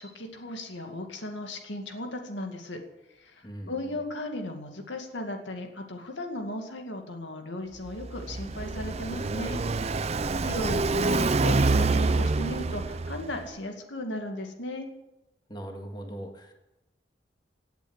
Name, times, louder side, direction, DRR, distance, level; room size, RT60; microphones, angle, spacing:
voice 1, 0.0-2.8 3.2-9.6 10.4-14.9, left 1 dB, 90° left, 4 dB, 2.2 m, -36 dB
voice 2, 3.4-4.0 10.1-10.8 15.5-16.5, right 1 dB, 25° left, 3 dB, 1.9 m, -40 dB
Car passing by, 7.9-13.4, right 3 dB, 35° right, 0.5 m, -26 dB
17.0 x 8.3 x 8.1 m, 0.94 s
head